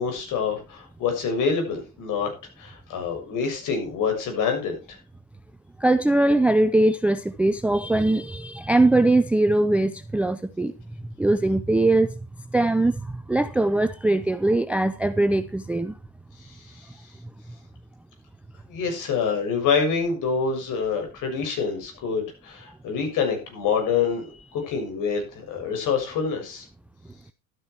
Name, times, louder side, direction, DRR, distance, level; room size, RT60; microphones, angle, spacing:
voice 1, 0.0-5.0 16.4-16.9 18.7-26.7, left 5 dB, 45° left, 6.7 m, -26 dB
voice 2, 5.8-10.7 11.2-12.1 12.5-15.9, right 2 dB, 5° right, 0.5 m, -21 dB
12.5 x 9.7 x 4.5 m
hypercardioid pair, 95°, 42 cm